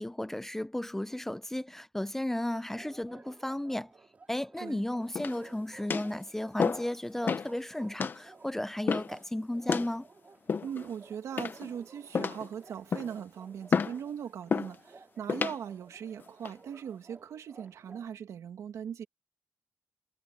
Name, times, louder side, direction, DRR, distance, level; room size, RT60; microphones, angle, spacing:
voice 1, 0.0-3.9 4.3-10.1, left 1 dB, 5° left, 0.6 m, -34 dB
Bark, 2.7-18.1, right 4 dB, 30° right, 2.9 m, -55 dB
sound 1, 5.1-5.5 5.9-6.1 6.6-6.9 7.3-7.5 8.0-8.2 8.9-9.2 9.7-9.9 10.5-10.9 11.4-11.7 12.1-12.5 12.9-13.2 13.7-14.0 14.5-14.7 15.3-15.6 16.2-16.5, left 5 dB, 40° left, 0.9 m, -30 dB
voice 2, 10.6-19.1, right 8 dB, 80° right, 2.3 m, -40 dB
wide cardioid pair, 155°, 5 cm